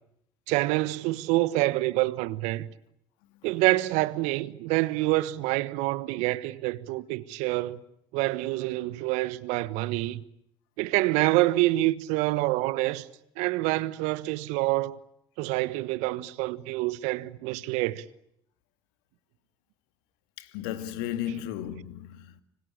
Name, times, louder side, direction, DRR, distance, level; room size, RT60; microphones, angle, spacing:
voice 1, 0.5-2.7 3.4-7.8 8.1-10.2 10.8-13.1 13.4-15.0 15.4-18.0, right 19 dB, 70° right, 1.3 m, -27 dB
voice 2, 20.4-22.4, left 11 dB, 70° left, 2.0 m, -34 dB
26.0 x 25.0 x 8.5 m
hypercardioid pair, 60°, 12 cm